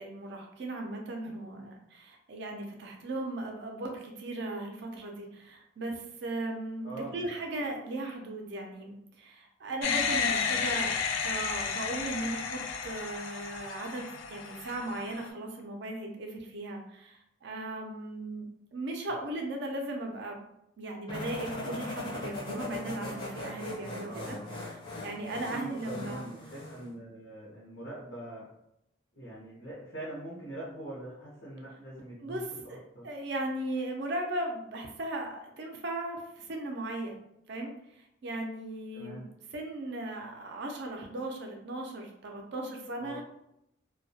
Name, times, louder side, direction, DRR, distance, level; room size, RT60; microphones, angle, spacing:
voice 1, 0.0-20.4 20.8-24.4 25.0-26.2 32.2-37.2 37.5-43.2, right 2 dB, 60° right, 2 dB, 0.4 m, -37 dB
voice 2, 6.8-7.3 10.5-10.7 24.0-24.5 25.5-28.6 29.1-32.4 32.9-33.0 38.9-39.2 43.0-43.2, right 1 dB, 60° left, -8 dB, 0.7 m, -42 dB
sound 1, 9.8-15.3, left 6 dB, 90° left, 0.3 m, -32 dB
sound 2, 21.1-26.9, left 2 dB, 25° left, 0.5 m, -40 dB
2.2 x 2.1 x 2.7 m, 0.80 s
head